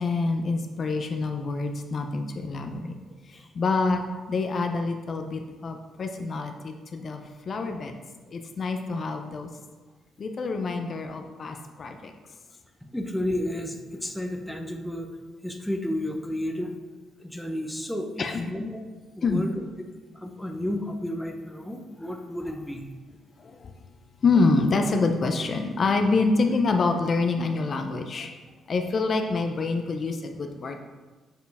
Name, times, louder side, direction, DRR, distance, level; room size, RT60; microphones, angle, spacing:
voice 1, 0.0-2.8 3.3-4.0 4.3-7.2 7.5-8.0 8.3-9.5 10.2-12.1 18.2-18.5 19.2-19.5 23.4-23.7 24.2-28.3 28.7-30.8, left 3 dB, 45° left, 5 dB, 0.5 m, -26 dB
voice 2, 12.8-15.1 15.4-16.7 17.2-18.8 19.1-19.6 20.1-22.9, left 1 dB, 5° left, 3 dB, 0.7 m, -32 dB
7.0 x 4.5 x 3.4 m, 1.3 s
cardioid pair, 90°, 0 cm